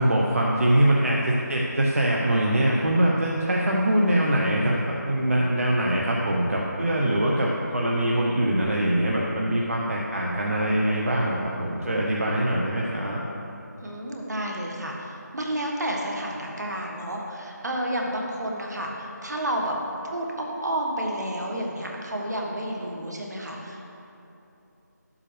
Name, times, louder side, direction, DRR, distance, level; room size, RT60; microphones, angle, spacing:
voice 1, 0.0-4.8 5.0-13.2, right 1 dB, 50° right, -3 dB, 0.9 m, -23 dB
voice 2, 13.8-19.7 20.1-23.9, right 1 dB, 65° right, -1 dB, 1.6 m, -30 dB
11.5 x 7.3 x 3.3 m, 2.9 s
figure-of-eight pair, 180°, 10 cm